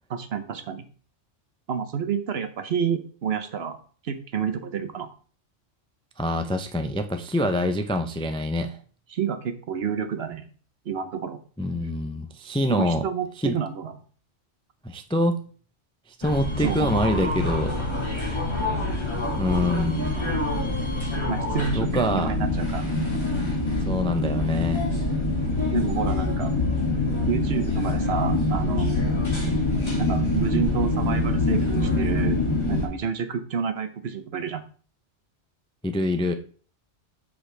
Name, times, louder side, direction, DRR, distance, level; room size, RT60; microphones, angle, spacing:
voice 1, 0.1-0.8 1.7-3.8 4.0-5.1 9.1-10.5 10.8-11.4 12.7-13.9 16.6-16.9 21.3-22.9 25.7-26.6 27.3-29.1 30.0-34.6, right 6 dB, 60° right, 9 dB, 1.0 m, -29 dB
voice 2, 6.2-8.8 11.6-13.0 13.4-13.6 14.8-15.4 16.2-17.7 19.4-20.3 21.7-22.4 23.9-24.8 35.8-36.3, left 1 dB, 5° left, 6 dB, 0.4 m, -25 dB
sound 1, 16.2-32.9, left 2 dB, 25° left, 2.1 m, -25 dB
7.6 x 6.4 x 3.3 m, 0.42 s
omnidirectional pair, 1.2 m